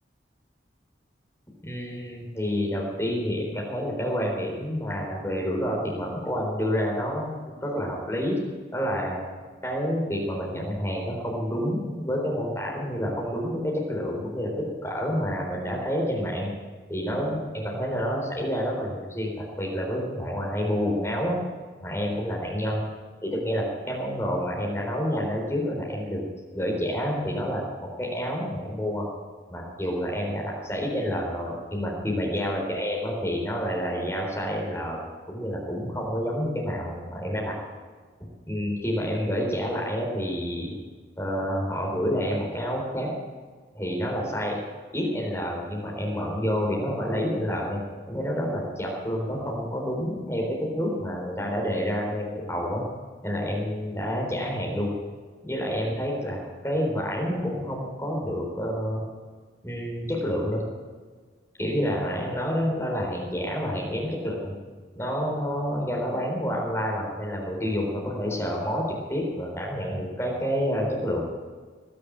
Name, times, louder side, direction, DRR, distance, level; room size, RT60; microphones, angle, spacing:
voice 1, 1.6-8.4 8.7-16.5 16.9-21.4 21.8-22.8 23.2-26.2 26.5-29.0 29.5-35.0 35.3-37.6 38.5-40.7 41.2-43.1 43.7-44.6 44.9-47.8 48.1-52.8 53.2-54.9 55.4-59.0 59.6-60.6 61.6-64.6 64.9-71.2, equal, 15° left, -2 dB, 4.1 m, -28 dB
20.0 x 6.9 x 8.8 m, 1.5 s
head